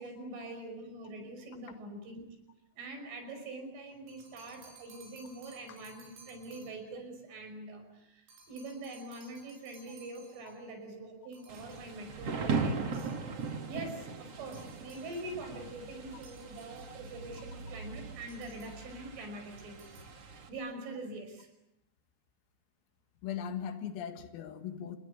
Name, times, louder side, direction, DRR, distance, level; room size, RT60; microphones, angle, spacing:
voice 1, 0.0-2.2 2.8-13.1 13.7-20.0 20.5-21.5, right 2 dB, 70° right, 5 dB, 8.1 m, -44 dB
sound 1, 3.9-7.0 8.3-10.7 11.3-12.0 12.9-13.6 14.5-15.4 16.1-17.3 18.3-19.0 19.6-20.2, right 3 dB, 90° right, 8.8 m, -59 dB
Thunder / Rain, 11.5-20.5, right 4 dB, 45° right, 2.3 m, -39 dB
voice 2, 23.2-25.0, left 8 dB, 90° left, 8 dB, 4.5 m, -39 dB
27.5 x 22.0 x 8.5 m, 0.86 s
omnidirectional pair, 5.9 m